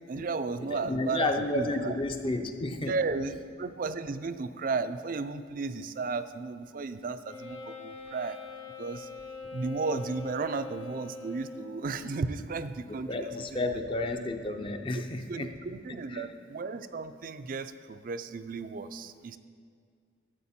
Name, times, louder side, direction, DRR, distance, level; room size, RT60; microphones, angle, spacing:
voice 1, 0.1-1.9 2.9-8.4 8.8-9.1 9.5-13.3 15.3-19.4, right 4 dB, 45° right, 12 dB, 0.4 m, -34 dB
voice 2, 0.6-3.0 12.8-15.5 16.1-16.3, left 2 dB, 25° left, 6 dB, 0.5 m, -32 dB
Wind instrument woodwind instrument, 7.2-11.9, left 3 dB, 70° left, 2.2 m, -43 dB
13.0 x 7.4 x 4.3 m, 2.2 s
head